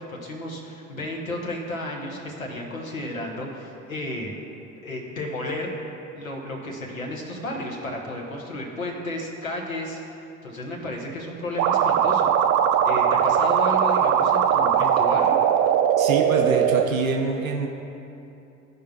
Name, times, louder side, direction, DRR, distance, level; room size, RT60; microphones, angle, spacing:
voice 1, 0.0-4.3 4.8-5.7 6.1-10.0 10.4-12.3 12.9-15.4, left 1 dB, 85° left, -1 dB, 1.1 m, -32 dB
sound 1, 11.6-16.8, right 8 dB, 50° right, 0.6 m, -20 dB
voice 2, 16.0-17.7, right 4 dB, 85° right, 1 dB, 0.6 m, -26 dB
15.5 x 5.3 x 2.4 m, 2.8 s
figure-of-eight pair, 55°, 40 cm